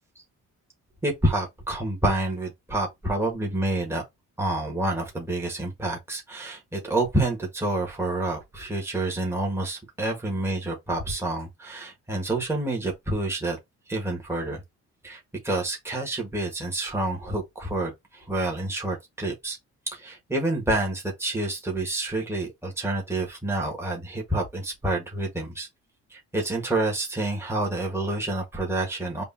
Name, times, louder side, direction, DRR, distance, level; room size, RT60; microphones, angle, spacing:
voice 1, 1.0-4.0 4.4-13.6 13.9-14.6 15.0-19.6 19.9-25.7 26.1-29.2, right 2 dB, 10° right, 1.6 m, -28 dB
5.2 x 2.6 x 2.8 m
cardioid pair, 90°, 30 cm